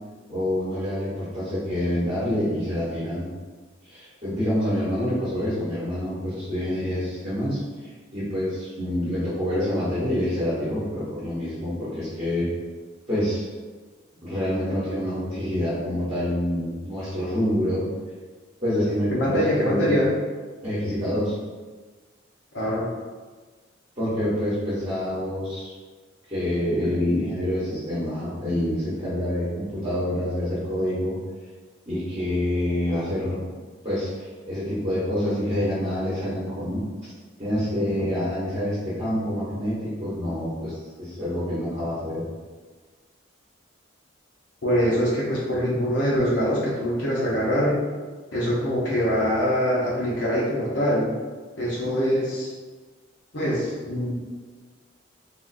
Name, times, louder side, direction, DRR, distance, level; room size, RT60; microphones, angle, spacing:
voice 1, 0.3-3.4 3.8-12.5 13.1-13.5 14.2-17.9 18.6-19.9 20.6-21.3 24.0-25.7 26.3-31.2 31.9-33.4 33.8-36.8 37.4-42.2, left 1 dB, 30° right, -11 dB, 0.9 m, -27 dB
voice 2, 19.1-20.1 22.5-22.9 44.6-47.8 48.3-51.1 51.6-52.5 53.3-54.1, equal, 65° left, -6 dB, 0.7 m, -23 dB
3.5 x 2.4 x 2.5 m, 1.4 s
head